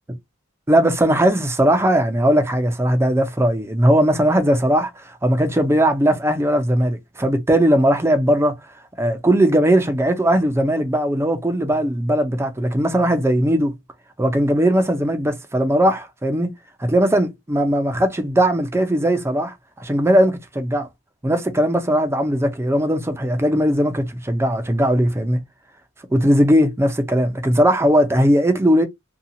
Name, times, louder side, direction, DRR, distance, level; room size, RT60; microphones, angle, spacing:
voice 1, 0.7-8.6 9.0-13.8 14.2-16.5 16.8-19.5 19.8-20.9 21.2-25.4 26.1-28.9, equal, 10° right, 0.5 m, -18 dB
2.7 x 2.3 x 2.6 m
head